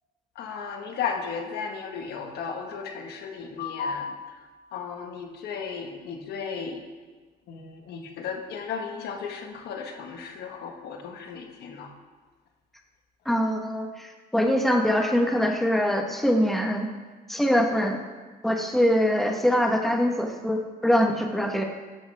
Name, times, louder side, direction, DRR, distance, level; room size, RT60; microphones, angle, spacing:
voice 1, 0.3-4.1 4.7-6.8 7.5-11.9, left 6 dB, 75° left, 3 dB, 1.6 m, -34 dB
voice 2, 13.2-16.9 17.3-18.0 18.4-21.6, equal, ahead, 2 dB, 1.3 m, -23 dB
13.5 x 11.0 x 3.5 m, 1.3 s
cardioid pair, 110°, 17 cm